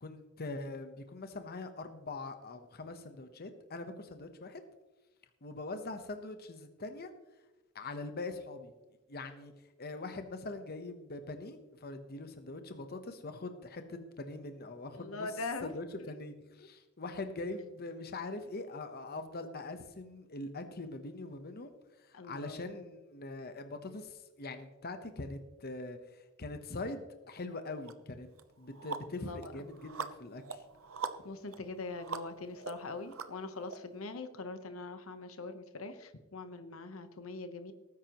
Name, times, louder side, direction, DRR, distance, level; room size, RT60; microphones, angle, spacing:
voice 1, 0.0-4.6 5.4-7.1 7.7-8.7 9.1-9.5 9.8-15.3 15.6-21.7 22.1-26.0 26.4-28.3 28.6-30.6, left 2 dB, 50° left, 8 dB, 1.0 m, -42 dB
voice 2, 14.9-15.7 16.0-16.1 16.6-16.7 22.1-22.6 29.2-29.5 31.2-37.7, left 3 dB, 75° left, 9 dB, 1.0 m, -42 dB
sound 1, 27.9-28.0 28.4-33.8, right 5 dB, 70° right, 0.9 m, -43 dB
18.5 x 9.6 x 3.0 m, 1.1 s
head